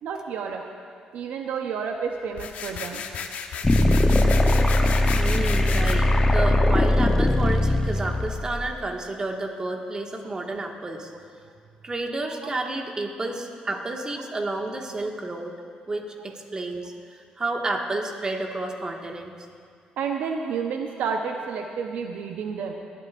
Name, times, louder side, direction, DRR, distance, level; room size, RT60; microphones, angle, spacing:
voice 1, 0.0-0.6 1.1-3.1 5.7-5.8 12.2-12.5 20.0-22.7, right 6 dB, 80° right, 3 dB, 0.8 m, -30 dB
sound 1, 2.3-6.0, left 6 dB, 70° left, 0.8 m, -34 dB
sound 2, 3.6-8.7, left 1 dB, 20° left, 0.8 m, -20 dB
voice 2, 5.1-11.1 11.8-15.5 15.9-16.9 17.4-19.3, right 2 dB, 30° right, 1 dB, 1.7 m, -30 dB
21.5 x 12.5 x 2.5 m, 2.2 s
cardioid pair, 85°, 3 cm